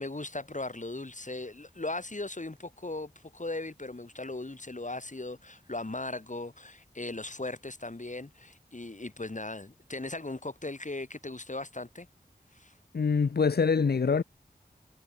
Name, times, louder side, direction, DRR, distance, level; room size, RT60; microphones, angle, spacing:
voice 1, 0.0-12.1 12.5-12.8, left 2 dB, 45° left, 4.6 m, -38 dB
voice 2, 12.9-14.2, left 5 dB, 70° left, 0.7 m, -25 dB
wide cardioid pair, 45°, 17 cm